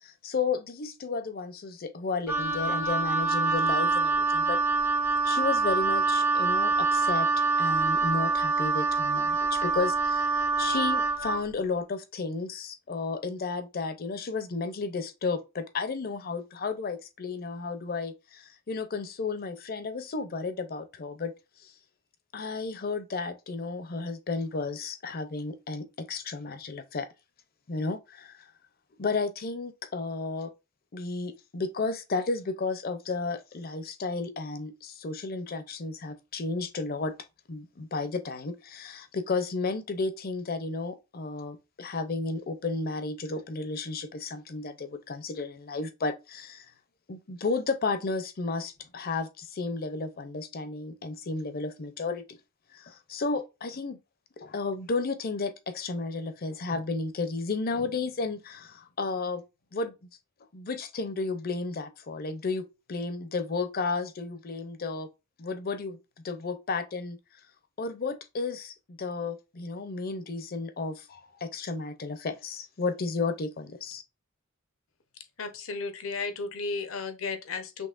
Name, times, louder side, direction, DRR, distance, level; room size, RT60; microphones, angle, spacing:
voice 1, 0.0-4.6 5.2-21.3 21.6-21.7 22.3-27.1 27.7-28.5 29.0-30.5 30.9-37.1 37.5-46.7 47.1-52.4 52.7-54.0 54.4-59.4 59.7-59.9 60.5-65.1 65.4-66.0 66.2-67.2 67.8-74.0, left 4 dB, 50° left, 0.6 m, -33 dB
Wind instrument woodwind instrument, 2.3-11.4, right 4 dB, 10° right, 0.6 m, -25 dB
voice 2, 75.4-77.9, left 4 dB, 85° left, 0.8 m, -34 dB
5.3 x 3.2 x 2.4 m
head